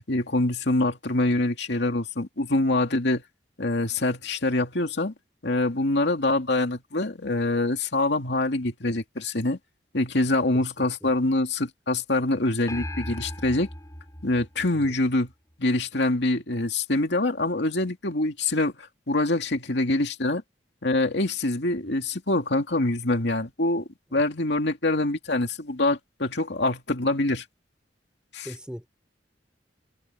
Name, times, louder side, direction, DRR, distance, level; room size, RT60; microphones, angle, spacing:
voice 1, 0.0-3.2 3.6-5.1 5.4-9.6 9.9-13.7 14.2-15.3 15.6-20.4 20.8-27.4 28.3-28.5, left 2 dB, 70° left, 2.5 m, -25 dB
voice 2, 10.5-11.1 14.8-15.0 28.4-28.9, equal, 5° right, 5.3 m, -40 dB
sound 1, 12.7-15.3, left 1 dB, 20° left, 6.4 m, -38 dB
head